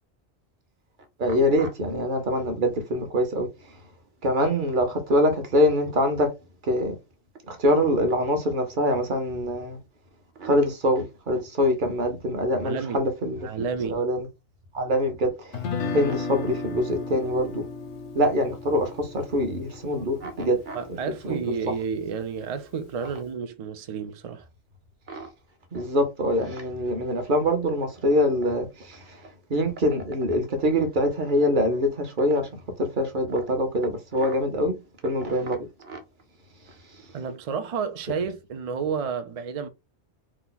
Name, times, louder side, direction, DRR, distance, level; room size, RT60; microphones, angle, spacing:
voice 1, 1.2-3.8 4.2-6.3 6.6-6.9 7.5-9.8 10.4-14.3 14.7-17.7 18.1-20.8 21.2-21.4 25.1-25.3 25.7-34.8 35.0-36.0 36.9-37.1, equal, 50° right, 0.9 m, -24 dB
voice 2, 12.6-13.0 13.4-14.0 20.7-24.5 37.1-39.7, right 6 dB, 70° right, 0.3 m, -31 dB
Guitar, 15.5-21.7, left 4 dB, 85° left, 0.9 m, -35 dB
2.9 x 2.2 x 3.8 m
omnidirectional pair, 1.1 m